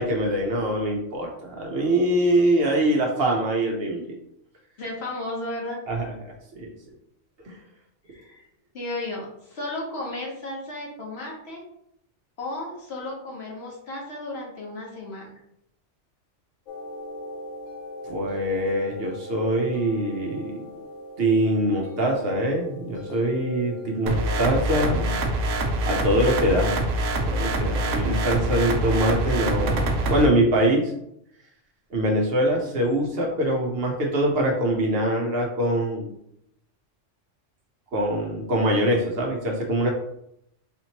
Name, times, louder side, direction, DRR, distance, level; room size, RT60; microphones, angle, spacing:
voice 1, 0.0-4.2 5.9-6.7 7.4-7.6 18.1-20.7 21.2-25.2 25.9-26.8 27.2-30.9 31.9-36.1 37.9-39.9, right 1 dB, 60° right, 0 dB, 0.9 m, -24 dB
voice 2, 4.8-5.8 8.1-8.4 8.7-11.6 12.4-15.3, left 2 dB, 60° left, -2 dB, 1.2 m, -34 dB
sound 1, 16.7-24.6, equal, 80° left, 1.1 m, -40 dB
sound 2, 24.1-30.3, right 1 dB, 90° right, 1.0 m, -25 dB
4.2 x 3.0 x 2.8 m, 0.76 s
omnidirectional pair, 1.3 m